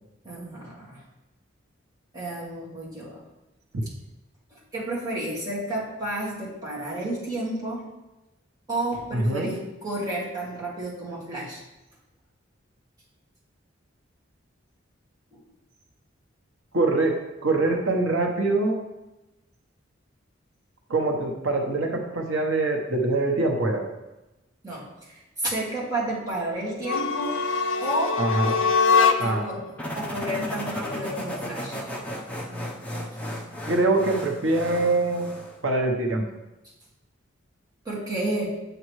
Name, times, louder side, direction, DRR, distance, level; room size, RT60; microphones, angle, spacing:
voice 1, 0.2-1.0 2.1-3.2 4.5-7.8 8.7-11.6 15.3-15.4 24.6-27.4 27.8-28.6 29.2-29.6 29.9-31.8 37.8-38.5, right 1 dB, 20° right, -6 dB, 2.1 m, -31 dB
voice 2, 9.1-9.5 16.7-18.8 20.9-23.9 28.2-28.6 29.2-29.4 33.7-35.2 35.6-36.3, right 2 dB, 90° right, 2 dB, 1.0 m, -24 dB
sound 1, 26.8-29.5, left 5 dB, 80° left, 0.5 m, -23 dB
sound 2, 29.8-35.6, equal, 5° left, 0.8 m, -34 dB
7.6 x 6.6 x 3.2 m, 1.0 s
head